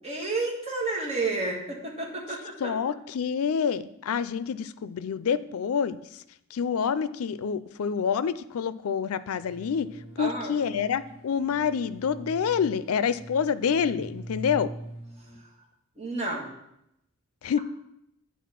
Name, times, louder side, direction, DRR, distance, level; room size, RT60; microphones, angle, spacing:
voice 1, 0.0-2.7 10.2-10.5 16.0-16.5, right 3 dB, 30° right, -2 dB, 1.7 m, -31 dB
voice 2, 2.6-6.2 6.5-9.9 10.2-14.7 17.4-17.6, left 7 dB, 85° left, 15 dB, 0.4 m, -27 dB
sound 1, 9.4-15.4, right 1 dB, 25° left, 1.9 m, -43 dB
9.3 x 4.2 x 5.8 m, 0.80 s
head